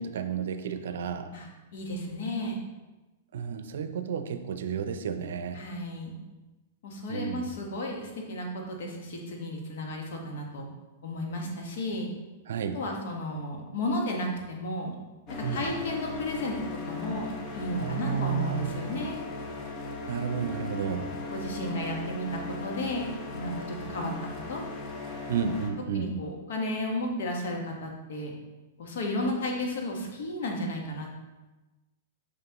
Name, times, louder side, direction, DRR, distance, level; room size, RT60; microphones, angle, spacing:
voice 1, 0.0-1.3 3.3-5.6 7.1-7.5 12.5-12.8 15.4-15.7 17.8-18.8 20.1-21.1 25.3-26.1, right 7 dB, 75° right, 9 dB, 0.5 m, -32 dB
voice 2, 1.3-2.6 5.5-6.1 6.8-10.7 11.0-12.1 12.7-15.0 15.3-19.2 21.3-24.1 24.5-24.6 25.9-28.3 28.8-31.1, left 1 dB, 70° left, 0 dB, 1.4 m, -33 dB
sound 1, 15.3-25.7, left 3 dB, 35° left, 1.0 m, -38 dB
5.9 x 5.7 x 3.0 m, 1.1 s
hypercardioid pair, 125°, 0 cm